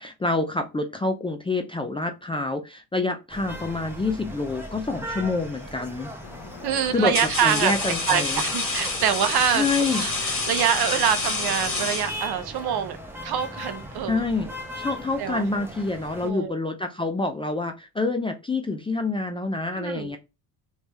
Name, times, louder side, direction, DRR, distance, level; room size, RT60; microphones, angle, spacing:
voice 1, 0.0-6.1 6.9-7.1 7.4-8.4 9.5-10.1 14.1-14.5 14.8-20.2, left 3 dB, 10° left, 0.5 m, -27 dB
sound 1, 3.3-16.3, equal, 5° right, 1.2 m, -39 dB
sound 2, 5.5-5.8 6.6-12.6, left 3 dB, 30° left, 2.0 m, -29 dB
sound 3, 6.2-12.1, left 7 dB, 60° left, 0.9 m, -43 dB
voice 2, 6.6-7.7 8.1-13.0 13.2-14.3 15.2-15.4 16.2-16.5 19.7-20.1, right 9 dB, 55° right, 0.9 m, -25 dB
3.3 x 3.1 x 3.0 m
supercardioid pair, 80°, 46 cm